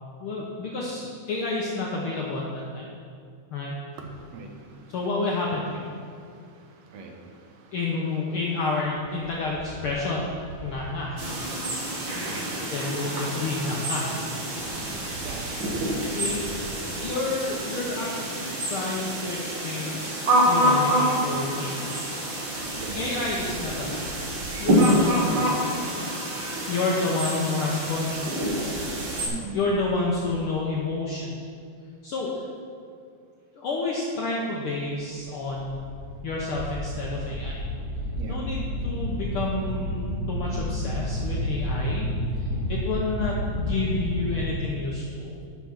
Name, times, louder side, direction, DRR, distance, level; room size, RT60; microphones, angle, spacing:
voice 1, 0.2-2.6 3.5-3.7 4.9-5.8 7.7-10.3 10.6-11.2 12.7-14.1 16.0-16.7 17.0-18.1 18.7-22.0 23.0-24.1 24.6-26.3 26.7-28.8 29.5-31.4 32.0-32.4 33.6-35.8 36.2-37.6 38.3-42.1 42.4-45.3, left 3 dB, 60° left, -3 dB, 1.5 m, -30 dB
sound 1, 11.2-29.3, equal, 45° right, 1.8 m, -27 dB
voice 2, 12.1-12.5 12.8-13.5 15.1-15.5 16.6-16.7 22.7-23.7 29.2-29.6 38.1-38.4, right 4 dB, 65° right, 3 dB, 2.1 m, -38 dB
sound 2, 35.3-44.5, equal, 30° left, 1.1 m, -30 dB
10.5 x 5.9 x 5.9 m, 2.3 s
omnidirectional pair, 3.3 m